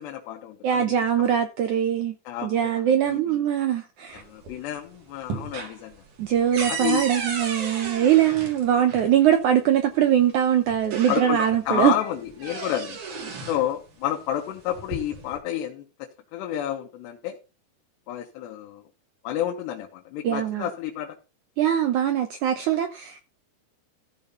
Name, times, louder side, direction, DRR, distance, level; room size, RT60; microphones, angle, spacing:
voice 1, 0.0-1.3 2.3-3.4 4.1-6.0 6.7-7.1 11.1-13.0 13.5-17.4 18.1-18.8 19.2-21.2, left 11 dB, 90° left, 3.3 m, -30 dB
voice 2, 0.6-2.2 2.4-4.2 6.2-11.9 20.2-20.7 21.6-23.2, right 10 dB, 80° right, 1.7 m, -22 dB
sound 1, 4.1-4.8 5.1-9.1 10.2-10.3 10.7-11.6 12.0-13.7 14.6-15.4, right 4 dB, 55° right, 3.7 m, -34 dB
14.5 x 5.3 x 5.6 m
omnidirectional pair, 4.7 m